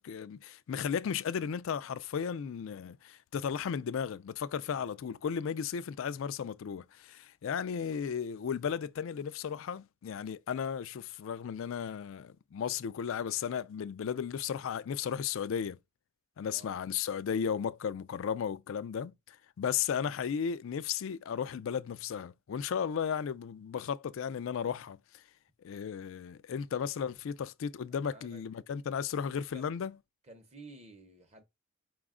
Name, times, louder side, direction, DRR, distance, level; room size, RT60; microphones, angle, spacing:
voice 1, 0.0-15.8 16.4-25.2 25.6-29.9, left 7 dB, 60° left, 0.3 m, -35 dB
voice 2, 16.4-16.8 27.9-28.4 29.5-29.7 30.2-31.4, right 2 dB, 30° right, 0.7 m, -53 dB
4.9 x 2.3 x 3.6 m
head